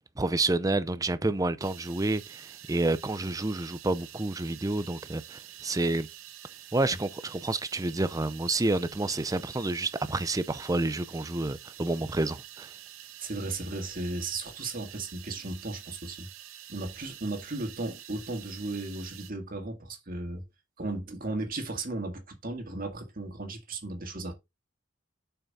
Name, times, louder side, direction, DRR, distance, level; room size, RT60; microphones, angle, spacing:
voice 1, 0.2-6.1 6.7-12.7, right 2 dB, 15° right, 0.5 m, -29 dB
sound 1, 1.6-19.3, right 12 dB, 70° right, 0.8 m, -48 dB
voice 2, 13.2-16.3 16.7-20.4 20.8-24.3, right 2 dB, 40° right, 2.0 m, -35 dB
7.2 x 5.7 x 4.2 m
head